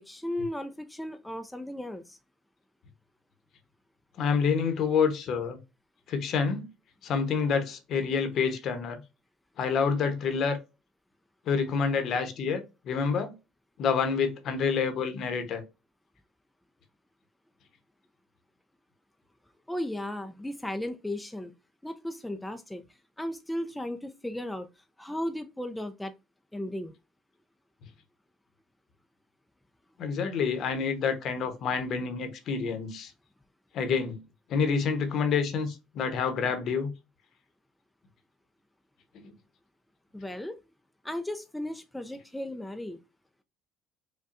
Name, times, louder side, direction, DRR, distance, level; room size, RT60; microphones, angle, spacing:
voice 1, 0.1-2.2 19.7-21.5 21.8-22.8 23.2-24.7 25.0-26.1 26.5-26.9 40.1-40.5 41.0-43.0, left 1 dB, 5° left, 0.4 m, -35 dB
voice 2, 4.2-5.6 6.1-6.7 7.0-9.0 9.6-10.6 11.5-13.3 13.8-15.6 30.0-33.1 33.7-34.2 34.5-36.9 39.2-39.3, left 6 dB, 55° left, 0.9 m, -28 dB
5.2 x 2.2 x 2.5 m
supercardioid pair, 95°, 0 cm